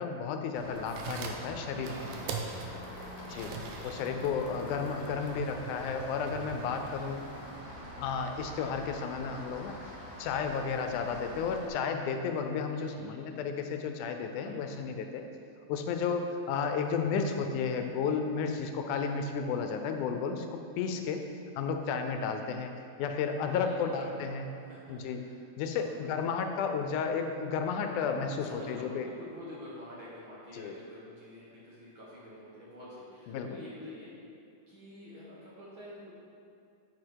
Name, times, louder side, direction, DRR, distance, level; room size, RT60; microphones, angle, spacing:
voice 1, 0.0-2.2 3.3-3.5 3.8-7.2 8.0-9.9 10.2-15.2 15.7-21.2 21.6-24.5 24.9-25.2 25.6-29.1 30.5-30.7 33.3-33.5, left 5 dB, 80° left, 5 dB, 2.0 m, -33 dB
Rain, 0.5-11.7, equal, 30° left, 1.2 m, -45 dB
sound 1, 0.8-7.6, right 5 dB, 75° right, 1.7 m, -43 dB
voice 2, 1.7-3.5 12.7-13.6 14.3-14.7 23.5-26.2 28.4-34.1 34.7-36.1, left 1 dB, 55° right, -7 dB, 1.5 m, -49 dB
sound 2, 2.5-5.5, left 2 dB, 65° left, 1.8 m, -54 dB
9.7 x 4.8 x 4.6 m, 2.4 s
omnidirectional pair, 3.5 m